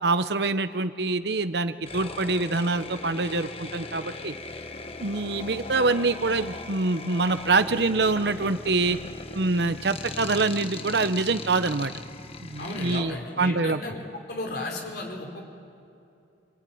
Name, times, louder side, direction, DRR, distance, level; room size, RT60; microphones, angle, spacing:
voice 1, 0.0-4.3 5.0-9.0 9.3-11.9 12.4-13.8, right 3 dB, 60° right, 11 dB, 0.9 m, -25 dB
sound 1, 1.9-13.0, left 3 dB, 30° left, 1.1 m, -38 dB
voice 2, 12.6-14.0 14.3-15.5, left 2 dB, 55° left, 1 dB, 4.6 m, -34 dB
27.5 x 21.5 x 9.4 m, 2.7 s
head